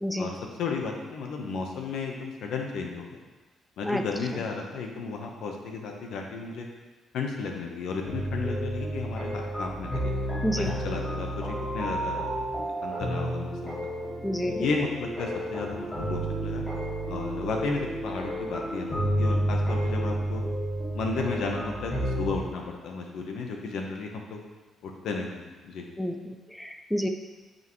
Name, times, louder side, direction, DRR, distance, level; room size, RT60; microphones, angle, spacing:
voice 1, 0.2-3.1 3.8-6.7 7.1-10.1 10.5-12.3 12.6-13.8 14.4-16.6 17.1-20.4 20.9-24.4 24.8-25.8, left 4 dB, 80° left, 1 dB, 1.1 m, -33 dB
sound 1, 8.0-22.3, right 1 dB, 30° left, 2.5 m, -31 dB
voice 2, 14.2-14.7 26.0-27.1, equal, 5° left, 5 dB, 0.5 m, -29 dB
8.9 x 5.5 x 3.2 m, 1.2 s
cardioid pair, 90°, 0 cm